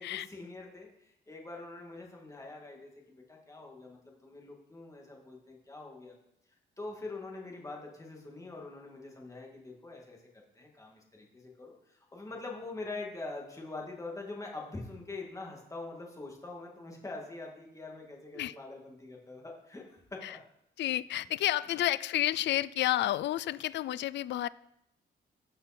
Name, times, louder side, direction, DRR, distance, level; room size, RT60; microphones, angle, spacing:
voice 1, 0.0-6.1 6.8-10.2 10.6-20.0 20.3-20.4, left 3 dB, 15° left, -1 dB, 2.2 m, -44 dB
voice 2, 20.8-24.5, left 13 dB, 65° left, 19 dB, 0.4 m, -30 dB
16.0 x 5.4 x 4.4 m, 0.79 s
cardioid pair, 135°, 19 cm